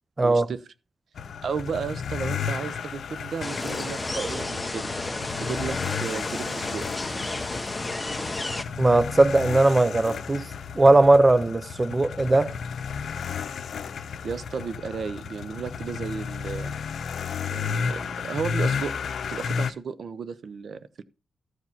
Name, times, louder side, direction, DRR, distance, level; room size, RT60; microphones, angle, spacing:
voice 1, 0.2-0.6 1.4-4.9 5.4-6.9 14.2-16.8 17.5-19.0 19.3-21.0, right 6 dB, 65° right, 0.7 m, -33 dB
sound 1, 1.2-19.7, left 6 dB, 75° left, 0.8 m, -33 dB
sound 2, 3.4-8.6, left 2 dB, 15° left, 1.0 m, -32 dB
voice 2, 8.8-10.5 10.8-12.5, right 2 dB, 20° right, 0.4 m, -19 dB
13.5 x 5.0 x 5.7 m
wide cardioid pair, 125°, 0 cm